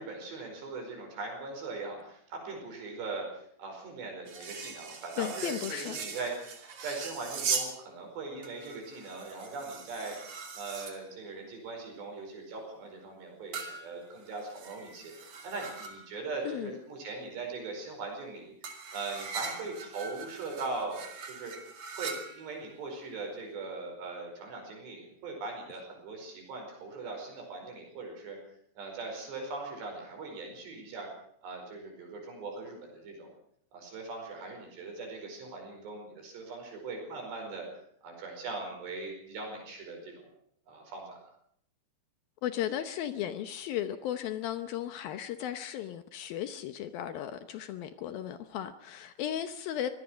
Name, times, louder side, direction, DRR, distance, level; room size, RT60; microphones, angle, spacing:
voice 1, 0.0-6.4 6.8-10.2 10.5-21.5 22.0-28.4 28.8-31.1 31.4-33.3 33.7-37.7 38.0-40.3 40.7-41.2, right 3 dB, 65° right, 7.1 m, -40 dB
sound 1, 4.3-7.8 8.4-11.0 13.5-16.1 18.6-22.7, right 5 dB, 45° right, 3.7 m, -40 dB
voice 2, 5.2-6.0 16.5-16.7 42.4-49.9, left 11 dB, 75° left, 2.2 m, -35 dB
25.0 x 18.0 x 6.3 m
omnidirectional pair, 5.3 m